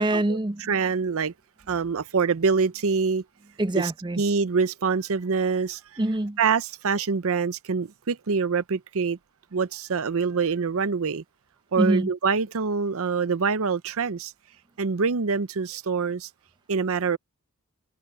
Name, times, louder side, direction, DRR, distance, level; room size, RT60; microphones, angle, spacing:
voice 1, 0.0-0.8 3.6-4.2 6.0-6.4 11.8-12.1, right 1 dB, 20° right, 0.7 m, -25 dB
voice 2, 0.7-1.3 1.7-3.2 4.2-5.8 6.4-9.2 9.5-11.2 11.7-14.3 14.8-16.3 16.7-17.2, right 5 dB, 65° right, 0.7 m, -25 dB
head